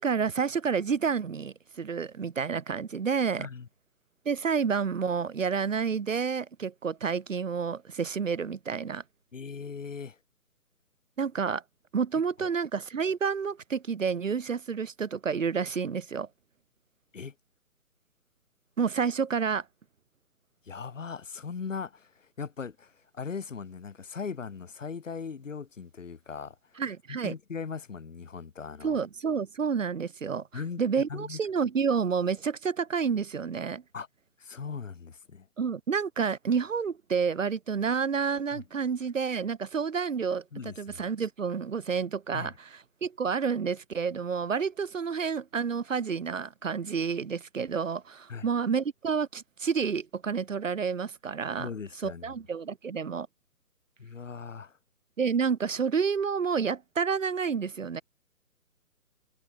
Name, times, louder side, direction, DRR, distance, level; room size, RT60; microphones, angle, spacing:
voice 1, 0.0-3.5 4.2-9.0 11.2-11.6 11.9-16.3 18.8-19.6 26.8-27.3 28.8-30.5 30.8-33.8 35.6-51.7 52.0-53.3 55.2-58.0, right 6 dB, 55° right, 1.3 m, -29 dB
voice 2, 9.3-10.2 12.4-12.5 17.1-17.3 20.7-26.8 27.1-29.0 30.5-30.8 31.1-31.4 33.9-34.1 34.4-35.5 38.5-38.6 40.5-41.1 42.3-42.5 48.3-48.5 51.6-52.3 54.0-54.8, left 5 dB, 55° left, 4.0 m, -39 dB
figure-of-eight pair, 145°, 45 cm